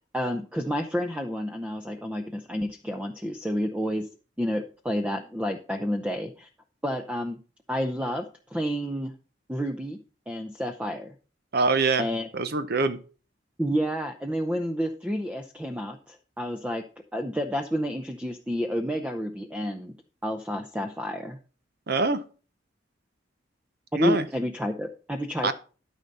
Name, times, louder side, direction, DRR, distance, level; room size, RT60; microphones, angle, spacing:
voice 1, 0.1-4.1 4.4-6.5 6.8-7.4 7.7-8.3 8.5-9.1 9.5-10.0 10.3-11.1 12.0-12.3 13.6-16.8 17.1-19.9 20.2-21.4 23.9-25.5, equal, 5° right, 5 dB, 0.6 m, -30 dB
voice 2, 11.5-12.1 12.3-13.0 21.9-22.2 24.0-24.3 25.4-25.5, right 3 dB, 60° right, 11 dB, 0.7 m, -24 dB
13.0 x 5.3 x 4.2 m, 0.37 s
head